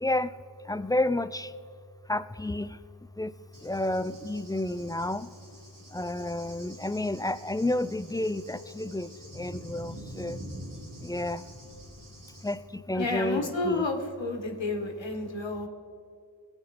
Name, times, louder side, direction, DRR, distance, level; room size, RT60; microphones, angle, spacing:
voice 1, 0.7-1.5 2.1-2.7 3.2-3.3 3.7-5.2 5.9-9.1 9.4-10.4 11.1-11.4 12.4-12.6 12.9-13.9, left 1 dB, 10° left, 14 dB, 0.4 m, -30 dB
Cricket / Thunder, 3.5-12.5, equal, 45° right, 2.6 m, -46 dB
voice 2, 12.9-15.7, left 2 dB, 75° left, 4 dB, 1.6 m, -31 dB
21.0 x 8.9 x 4.2 m, 2.4 s
wide cardioid pair, 50°, 45 cm